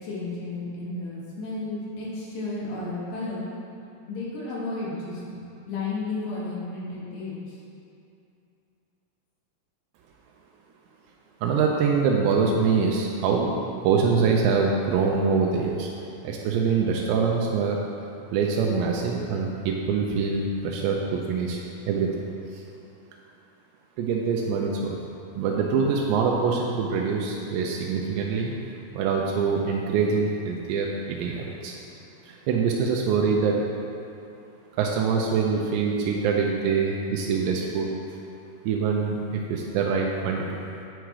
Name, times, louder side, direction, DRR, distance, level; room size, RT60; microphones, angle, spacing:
voice 1, 0.0-3.5 4.1-7.6, left 3 dB, 65° left, -6 dB, 2.5 m, -33 dB
voice 2, 11.4-13.5 13.8-15.9 16.2-17.8 18.3-21.6 21.9-22.1 22.5-22.6 24.0-25.0 25.4-28.5 28.9-31.7 32.3-33.6 34.8-37.9 38.7-40.5, right 5 dB, 85° right, -1 dB, 2.8 m, -24 dB
9.1 x 4.8 x 4.7 m, 2.7 s
omnidirectional pair, 4.9 m